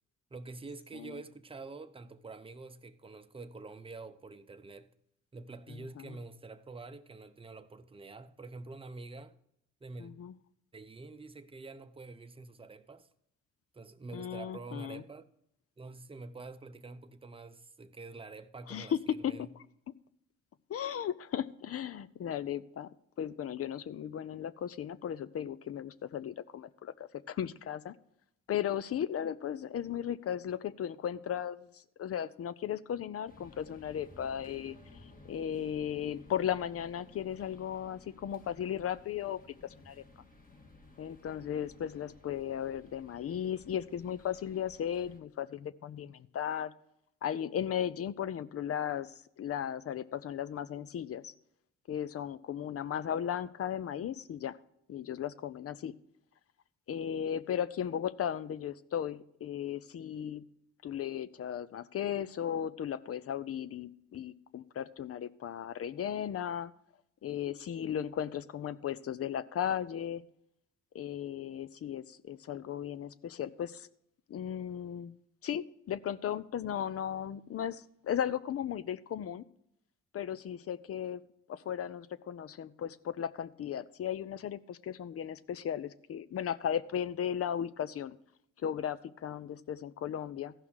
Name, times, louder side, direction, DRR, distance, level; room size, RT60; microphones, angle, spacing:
voice 1, 0.3-4.9 5.3-9.3 9.8-10.1 10.7-13.1 13.7-15.3 15.8-19.5, right 3 dB, 20° right, 0.8 m, -47 dB
voice 2, 5.7-6.1 10.0-10.3 14.1-15.0 18.7-19.5 20.7-22.9 23.2-27.9 28.5-34.8 35.3-40.0 41.0-46.7 47.2-51.3 51.9-54.6 54.9-55.9 56.9-60.4 60.8-66.7 67.2-70.2 70.9-73.9 74.3-75.2 75.4-79.4 80.1-81.2 81.5-88.2 88.6-90.5, left 9 dB, 50° left, 0.6 m, -36 dB
sound 1, 33.3-45.2, left 3 dB, 30° left, 1.9 m, -57 dB
14.5 x 5.7 x 6.3 m
cardioid pair, 90°, 30 cm